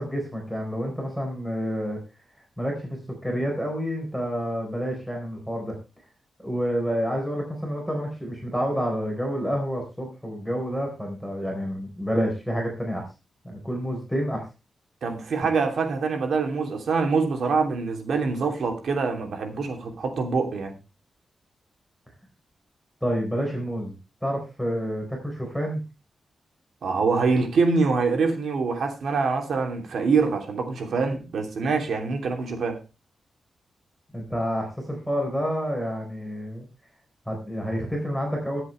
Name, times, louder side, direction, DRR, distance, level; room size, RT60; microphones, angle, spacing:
voice 1, 0.0-2.0 2.6-5.7 6.4-13.0 13.4-14.4 23.0-24.0 24.2-25.8 34.1-36.7 37.3-38.6, equal, ahead, 4.0 m, -29 dB
voice 2, 15.0-20.7 26.8-32.8, right 4 dB, 75° right, 2.8 m, -25 dB
21.0 x 7.9 x 3.2 m
wide cardioid pair, 155°, 0 cm